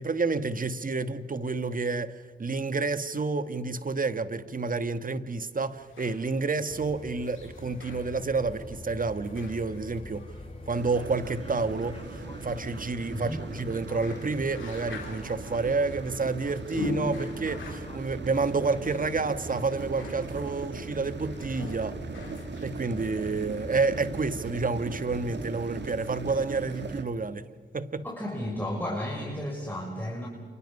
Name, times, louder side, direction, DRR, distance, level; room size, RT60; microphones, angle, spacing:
voice 1, 0.0-2.1 2.4-10.3 10.6-22.0 22.6-27.4 27.7-28.0, right 4 dB, 45° right, 1.6 m, -29 dB
sound 1, 5.6-23.8, left 4 dB, 85° left, 4.0 m, -44 dB
sound 2, 6.7-25.5, left 1 dB, 30° left, 3.2 m, -45 dB
sound 3, 10.7-27.0, right 4 dB, 65° right, 1.9 m, -40 dB
voice 2, 13.1-13.5 28.0-30.3, left 1 dB, 10° left, 6.3 m, -33 dB
29.5 x 28.0 x 5.5 m
supercardioid pair, 45°, 20 cm